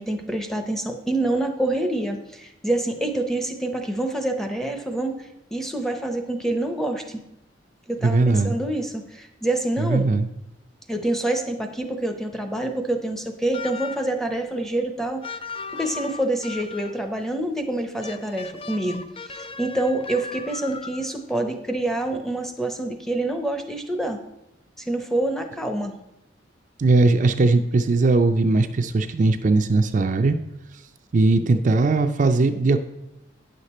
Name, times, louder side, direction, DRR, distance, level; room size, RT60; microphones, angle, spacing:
voice 1, 0.0-7.2 7.9-10.1 10.9-15.2 15.7-24.2 24.9-25.9, right 1 dB, ahead, 4 dB, 0.7 m, -26 dB
voice 2, 8.0-8.5 9.8-10.3 26.8-30.4 31.1-32.8, right 3 dB, 45° right, 7 dB, 0.4 m, -19 dB
sound 1, 13.5-14.2 15.2-17.1 18.0-21.2, left 4 dB, 30° left, 0.3 m, -37 dB
9.4 x 6.6 x 4.2 m, 0.87 s
head